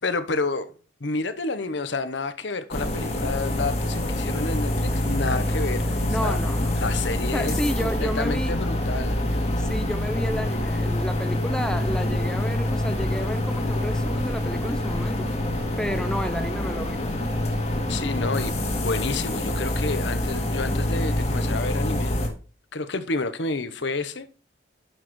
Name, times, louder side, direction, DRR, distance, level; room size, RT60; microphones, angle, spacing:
voice 1, 0.0-0.7 1.0-6.4 6.7-9.6 17.9-22.2 22.7-24.4, left 3 dB, 75° left, 1.0 m, -30 dB
sound 1, 2.7-22.3, left 1 dB, 35° left, 1.8 m, -26 dB
voice 2, 6.1-6.8 7.3-8.5 9.6-15.3 15.8-17.1, equal, 5° left, 0.6 m, -31 dB
11.0 x 6.4 x 3.1 m
head